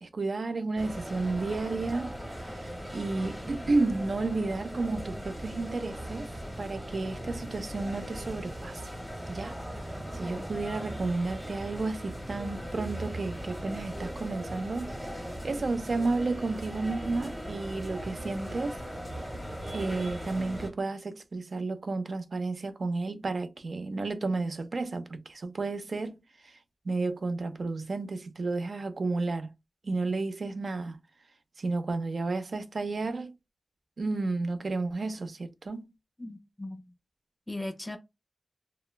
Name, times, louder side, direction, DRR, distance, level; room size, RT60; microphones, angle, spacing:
voice 1, 0.0-6.3 6.6-8.8 9.3-9.6 10.1-14.9 15.4-18.8 19.7-26.5 26.9-29.5 29.8-31.0 31.6-33.3 34.0-35.9, right 3 dB, 75° right, 0.4 m, -32 dB
sound 1, 0.8-20.7, equal, 15° right, 1.0 m, -39 dB
voice 2, 36.2-36.9 37.5-38.0, left 2 dB, 20° left, 0.5 m, -39 dB
2.9 x 2.1 x 2.2 m
wide cardioid pair, 85°, 0 cm